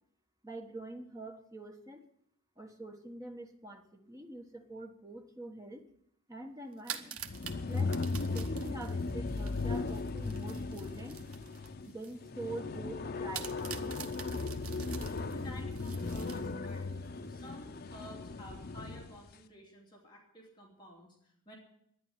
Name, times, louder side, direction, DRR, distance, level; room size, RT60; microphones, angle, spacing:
voice 1, 0.4-2.0 2.6-5.8 6.3-7.2 7.7-8.0 8.3-11.2 11.9-14.0, right 2 dB, 15° right, 4 dB, 1.4 m, -45 dB
sound 1, 6.7-12.2 12.6-12.7 13.3-16.8, right 8 dB, 75° right, 1.3 m, -46 dB
sound 2, 7.2-19.2, left 3 dB, 45° left, 0.6 m, -37 dB
voice 2, 14.8-21.6, equal, 20° left, -3 dB, 2.9 m, -52 dB
11.5 x 10.0 x 9.5 m, 0.75 s
head